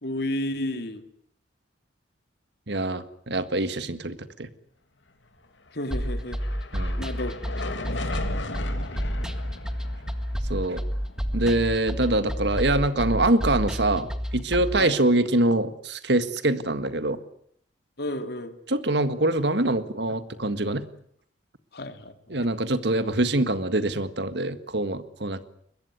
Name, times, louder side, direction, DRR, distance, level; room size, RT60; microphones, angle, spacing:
voice 1, 0.0-1.0 5.7-6.4 7.0-7.3 8.0-8.2 14.8-15.0 18.0-18.6 21.7-22.4, left 1 dB, 60° left, 8 dB, 2.7 m, -32 dB
voice 2, 2.7-4.5 6.7-7.0 10.5-10.8 11.3-17.2 18.7-20.8 22.3-25.5, right 2 dB, 65° right, 12 dB, 1.8 m, -24 dB
sound 1, 5.7-14.1, left 2 dB, 85° left, 3.2 m, -39 dB
sound 2, 5.9-14.8, equal, 5° right, 1.8 m, -30 dB
23.0 x 21.0 x 9.5 m, 0.66 s
head